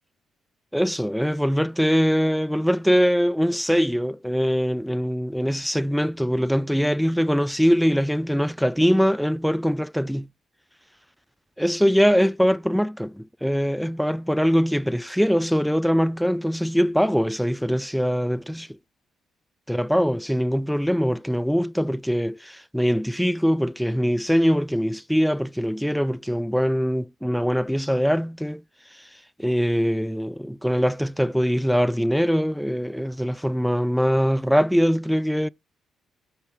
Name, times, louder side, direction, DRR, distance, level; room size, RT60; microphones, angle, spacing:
voice 1, 0.7-10.3 11.6-18.7 19.7-28.6 29.4-35.5, equal, ahead, 0.3 m, -22 dB
6.8 x 3.6 x 5.8 m
cardioid pair, 90°, 0 cm